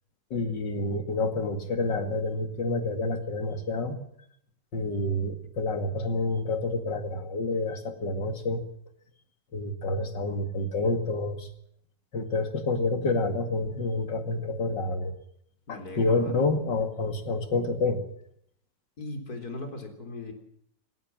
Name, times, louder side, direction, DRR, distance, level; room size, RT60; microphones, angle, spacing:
voice 1, 0.3-4.0 4.7-8.6 9.5-11.5 12.1-15.1 15.7-18.0, left 2 dB, 75° left, 8 dB, 2.9 m, -28 dB
voice 2, 15.7-16.5 19.0-20.3, left 2 dB, 55° left, 6 dB, 4.4 m, -38 dB
20.0 x 17.5 x 7.5 m, 0.69 s
omnidirectional pair, 1.9 m